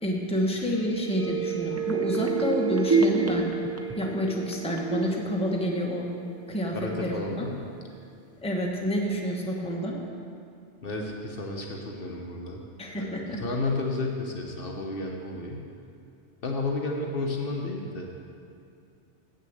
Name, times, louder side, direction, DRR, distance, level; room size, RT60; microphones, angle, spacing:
voice 1, 0.0-3.5 4.0-6.1 6.5-7.4 8.4-10.0 12.8-13.4, equal, 5° left, -1 dB, 0.9 m, -29 dB
sound 1, 0.7-6.4 6.8-6.9, right 4 dB, 20° right, 0.5 m, -29 dB
voice 2, 6.7-7.6 10.8-12.6 12.9-15.6 16.4-18.1, left 2 dB, 55° left, 0 dB, 1.1 m, -32 dB
7.5 x 6.7 x 7.8 m, 2.5 s
omnidirectional pair, 1.2 m